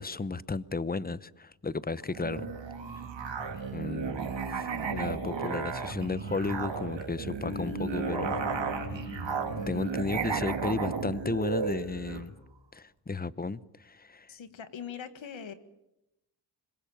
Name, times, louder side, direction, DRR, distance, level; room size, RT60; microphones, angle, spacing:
voice 1, 0.0-2.5 3.7-8.4 9.7-12.3 12.7-14.3, left 3 dB, 20° left, 0.9 m, -34 dB
Musical instrument, 2.1-12.3, right 5 dB, 75° right, 3.5 m, -34 dB
Bass guitar, 7.5-11.4, left 4 dB, 40° left, 1.0 m, -42 dB
voice 2, 14.3-15.5, left 7 dB, 90° left, 1.9 m, -41 dB
26.5 x 21.5 x 7.2 m
cardioid pair, 75°, 45 cm